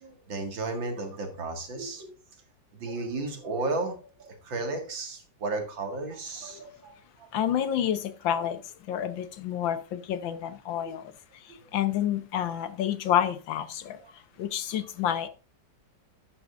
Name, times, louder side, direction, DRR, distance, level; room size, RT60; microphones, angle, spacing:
voice 1, 0.0-2.1 2.7-6.9 10.8-10.9 11.5-11.6, right 3 dB, 85° right, 2.7 m, -34 dB
voice 2, 7.3-15.3, left 10 dB, 90° left, 1.7 m, -29 dB
11.5 x 8.1 x 2.5 m
omnidirectional pair, 2.0 m